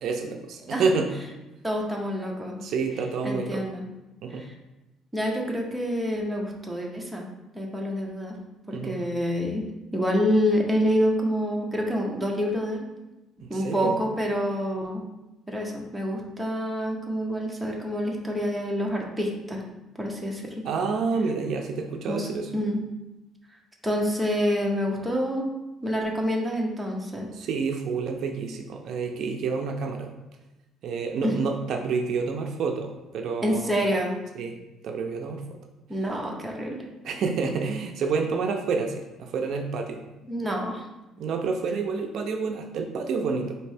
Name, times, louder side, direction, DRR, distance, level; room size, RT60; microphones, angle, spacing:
voice 1, 0.0-1.1 2.6-3.6 4.2-4.4 8.7-9.0 13.4-14.0 20.6-22.5 27.3-30.1 30.8-33.8 34.4-35.4 37.0-40.0 41.2-43.5, right 4 dB, 55° right, 3 dB, 0.4 m, -28 dB
voice 2, 1.6-2.6 3.2-3.8 4.4-4.5 5.1-7.2 7.5-8.4 8.7-9.6 9.9-12.9 13.5-15.0 15.5-19.6 20.0-20.7 22.1-22.8 23.8-25.5 25.8-27.3 31.2-31.3 33.4-34.1 35.9-36.9 40.3-40.8, equal, 5° right, -1 dB, 0.5 m, -27 dB
4.2 x 2.6 x 3.3 m, 1.0 s
cardioid pair, 160°, 0 cm